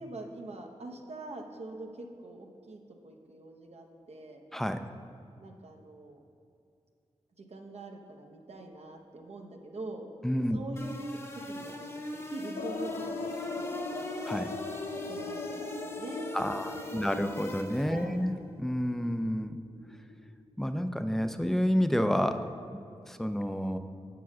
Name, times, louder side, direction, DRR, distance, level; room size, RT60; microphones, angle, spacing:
voice 1, 0.0-4.4 5.4-6.2 7.4-10.1 10.5-11.2 11.5-11.9 12.3-14.0 14.9-17.1 17.9-18.2, right 2 dB, 65° right, 2 dB, 0.8 m, -44 dB
voice 2, 4.5-4.8 10.2-10.6 14.2-14.5 16.3-19.6 20.6-22.5 23.1-23.8, equal, 5° left, 9 dB, 0.4 m, -29 dB
sound 1, 10.8-18.2, left 1 dB, 20° left, 0.8 m, -40 dB
sound 2, 12.6-21.0 21.4-21.5 21.7-21.8, left 3 dB, 70° left, 0.5 m, -40 dB
7.1 x 4.7 x 6.1 m, 2.5 s
cardioid pair, 55°, 12 cm